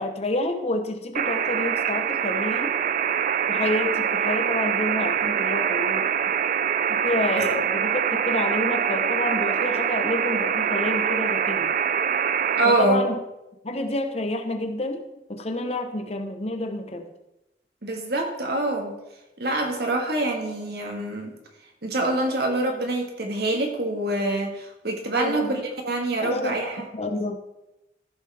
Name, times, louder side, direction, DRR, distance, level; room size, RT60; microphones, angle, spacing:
voice 1, 0.0-2.7 3.5-6.4 6.9-11.7 12.6-13.2 13.6-15.0 15.3-17.1 25.2-25.6 26.2-26.5 26.9-27.3, left 2 dB, 35° left, 5 dB, 1.0 m, -29 dB
sound 1, 1.2-12.7, right 8 dB, 45° right, 0.4 m, -24 dB
voice 2, 12.5-13.0 17.8-18.9 19.4-21.3 21.8-26.9, right 2 dB, 60° right, 2 dB, 1.7 m, -25 dB
14.5 x 6.9 x 3.5 m, 0.94 s
head